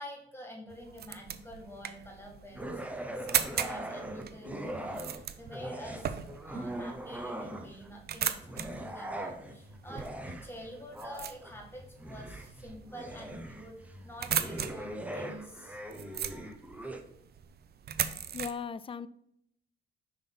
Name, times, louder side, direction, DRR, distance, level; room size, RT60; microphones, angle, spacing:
voice 1, 0.0-6.2 6.4-13.8 14.0-16.6, equal, 10° left, 0 dB, 1.8 m, -47 dB
sound 1, 0.7-18.5, right 9 dB, 55° right, 0.6 m, -39 dB
sound 2, 2.5-5.2 5.5-7.9 8.4-17.0, right 1 dB, 5° right, 0.9 m, -41 dB
voice 2, 18.3-19.1, left 6 dB, 25° left, 16 dB, 0.4 m, -37 dB
5.7 x 3.6 x 5.5 m, 0.74 s
cardioid pair, 90°, 20 cm